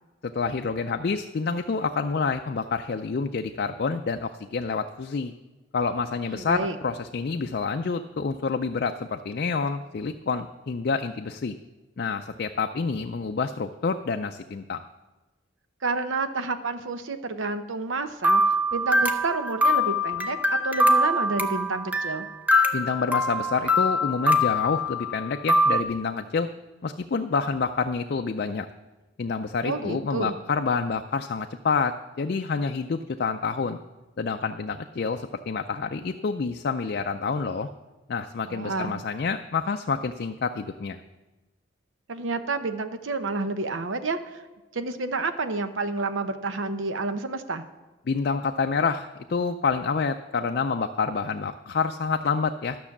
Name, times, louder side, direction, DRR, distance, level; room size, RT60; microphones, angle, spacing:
voice 1, 0.2-5.3 5.7-11.6 12.0-14.8 22.7-26.5 26.8-28.7 29.2-33.8 34.2-37.7 38.1-41.0 48.1-52.8, left 5 dB, 50° left, 6 dB, 0.4 m, -28 dB
voice 2, 6.3-6.8 15.8-22.3 29.6-30.4 38.5-39.0 42.1-44.4 44.7-47.6, right 3 dB, 80° right, 10 dB, 0.8 m, -29 dB
sound 1, 18.2-25.8, left 1 dB, 10° right, 0.7 m, -23 dB
12.0 x 6.2 x 7.2 m, 1.2 s
head